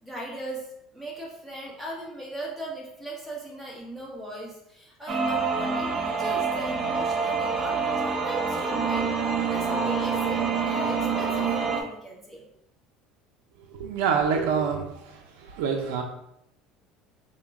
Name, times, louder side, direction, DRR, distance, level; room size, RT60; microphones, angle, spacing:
voice 1, 0.0-0.6 0.9-12.4, right 1 dB, 5° right, -4 dB, 1.0 m, -39 dB
sound 1, 5.1-11.8, right 5 dB, 30° right, 0.5 m, -26 dB
voice 2, 13.7-15.2 15.5-16.0, right 6 dB, 90° right, 3 dB, 0.4 m, -26 dB
3.8 x 2.1 x 3.4 m, 0.80 s
cardioid pair, 135°, 0 cm